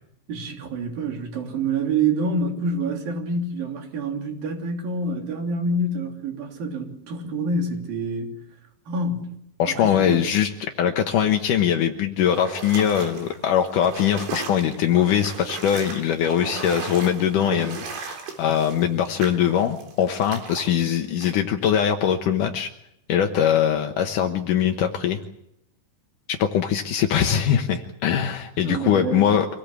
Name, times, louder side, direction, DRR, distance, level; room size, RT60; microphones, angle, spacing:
voice 1, 0.3-8.3 8.9-9.3 9.6-10.2 28.6-29.4, right 2 dB, 50° right, 3 dB, 4.7 m, -27 dB
voice 2, 9.6-22.7 23.1-25.2 26.4-29.5, left 9 dB, 75° left, 4 dB, 1.9 m, -22 dB
sound 1, 12.3-20.7 21.2-21.3, right 4 dB, 70° right, 6.0 m, -36 dB
26.0 x 19.0 x 8.4 m, 0.80 s
omnidirectional pair, 5.5 m